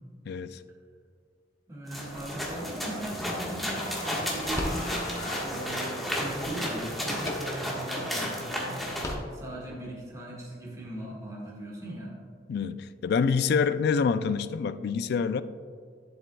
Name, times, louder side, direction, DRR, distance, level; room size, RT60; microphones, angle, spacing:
voice 1, 0.3-0.6 12.5-15.4, left 5 dB, 60° left, 13 dB, 0.3 m, -26 dB
voice 2, 1.7-8.9 9.3-12.2, right 1 dB, 20° right, -5 dB, 1.6 m, -39 dB
sound 1, 1.9-9.1, equal, ahead, 1.3 m, -33 dB
sound 2, 2.1-5.4 5.8-8.0 8.4-8.5 8.7-9.9, left 1 dB, 15° left, 0.7 m, -40 dB
sound 3, 3.8-6.3, left 2 dB, 45° left, 1.2 m, -41 dB
10.0 x 7.7 x 2.2 m, 2.1 s
head